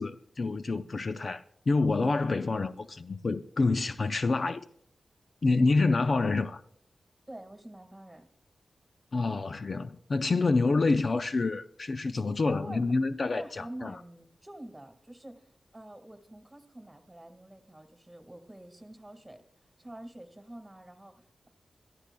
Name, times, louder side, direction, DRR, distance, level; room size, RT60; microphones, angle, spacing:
voice 1, 0.0-4.6 5.4-6.6 9.1-13.9, left 3 dB, 50° left, 0.4 m, -27 dB
voice 2, 5.8-6.1 7.3-8.3 12.1-12.9 13.2-21.5, right 1 dB, 15° right, 1.7 m, -47 dB
23.5 x 13.5 x 2.2 m
wide cardioid pair, 90°, 0 cm